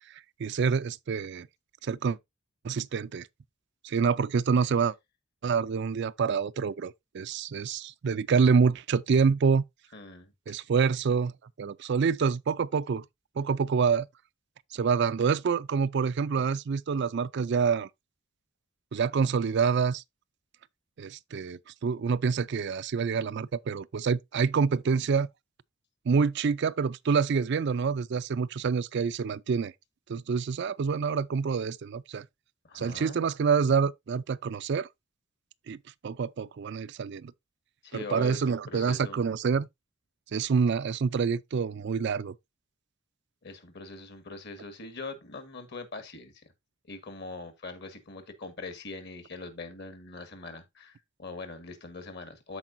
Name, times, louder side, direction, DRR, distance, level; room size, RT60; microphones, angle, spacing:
voice 1, 0.4-1.5 1.8-2.2 2.6-3.3 3.8-4.9 5.4-9.6 10.5-11.3 11.6-13.0 13.4-14.1 14.7-17.9 18.9-20.0 21.0-25.3 26.1-29.7 30.1-32.3 32.7-34.9 35.7-35.8 36.0-37.3 37.9-39.7 40.3-42.3, right 5 dB, 55° right, 0.4 m, -27 dB
voice 2, 9.9-10.3 32.6-33.2 37.8-39.2 43.4-46.4 46.9-52.6, left 3 dB, 55° left, 1.8 m, -42 dB
13.5 x 4.7 x 2.6 m
head